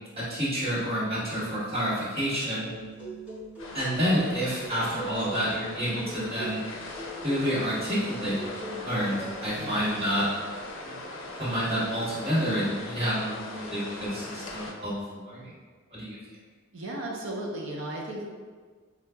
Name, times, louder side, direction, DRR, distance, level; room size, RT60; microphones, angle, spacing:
voice 1, 0.1-2.7 3.7-6.6 7.2-10.3 10.8-11.0 11.4-15.5 15.9-16.2, equal, 30° right, -10 dB, 1.4 m, -29 dB
sound 1, 2.6-9.4, right 2 dB, 10° right, 0.8 m, -41 dB
sound 2, 3.6-14.7, left 2 dB, 70° left, 0.5 m, -40 dB
voice 2, 9.6-9.9 16.7-18.3, right 1 dB, 70° right, -1 dB, 0.7 m, -35 dB
5.4 x 2.4 x 2.2 m, 1.5 s
head